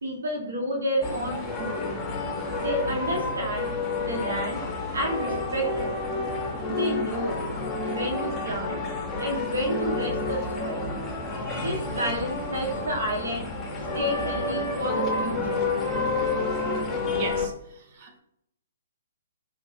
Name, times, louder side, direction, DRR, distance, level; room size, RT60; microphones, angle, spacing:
voice 1, 0.0-1.8 2.6-3.7 4.0-4.6 4.9-5.9 6.7-7.4 7.8-8.8 9.2-10.8 11.5-13.5 13.9-15.6, equal, 75° right, -1 dB, 1.4 m, -30 dB
sound 1, 1.0-17.5, left 3 dB, 15° left, 0.9 m, -30 dB
voice 2, 11.3-12.1 17.2-17.5 18.0-18.2, right 3 dB, 40° right, 4 dB, 0.8 m, -37 dB
4.9 x 2.9 x 2.7 m, 0.76 s
hypercardioid pair, 130°, 0 cm